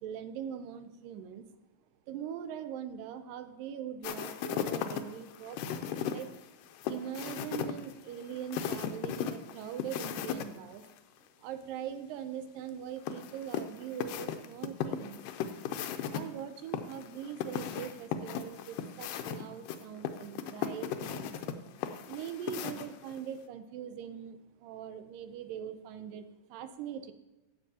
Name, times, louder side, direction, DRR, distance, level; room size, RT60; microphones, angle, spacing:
voice 1, 0.0-1.5 2.1-6.3 6.9-10.9 11.4-15.2 16.1-21.3 22.1-27.1, right 9 dB, 85° right, 10 dB, 2.4 m, -42 dB
sound 1, 4.0-10.5 10.8-10.9 13.1-16.2 16.7-23.2, left 9 dB, 85° left, 2.2 m, -36 dB
13.5 x 8.1 x 2.8 m, 1.0 s
omnidirectional pair, 3.8 m